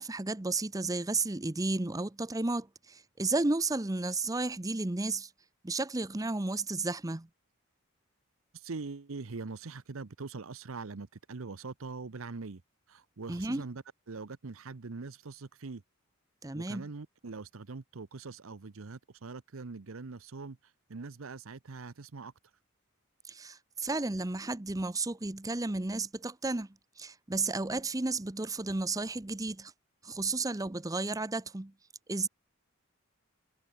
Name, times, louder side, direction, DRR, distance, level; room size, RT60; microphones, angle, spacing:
voice 1, 0.0-5.3 5.6-7.3 13.3-13.6 16.4-16.9 23.3-26.7 27.0-29.7 30.0-31.7 32.1-32.3, right 3 dB, 15° right, 0.7 m, -33 dB
voice 2, 8.5-12.6 12.9-15.8 16.5-20.6 20.9-22.3, right 4 dB, 75° right, 0.8 m, -42 dB
head